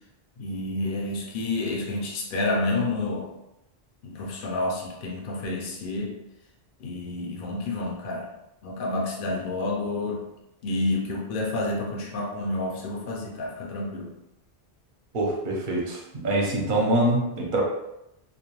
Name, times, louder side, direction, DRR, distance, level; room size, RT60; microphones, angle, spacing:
voice 1, 0.4-3.3 4.0-6.1 6.8-8.3 8.6-10.2 10.6-14.1, left 2 dB, 65° left, -1 dB, 0.7 m, -29 dB
voice 2, 15.1-17.6, right 1 dB, 55° right, -2 dB, 0.8 m, -24 dB
2.5 x 2.1 x 3.0 m, 0.88 s
omnidirectional pair, 1.0 m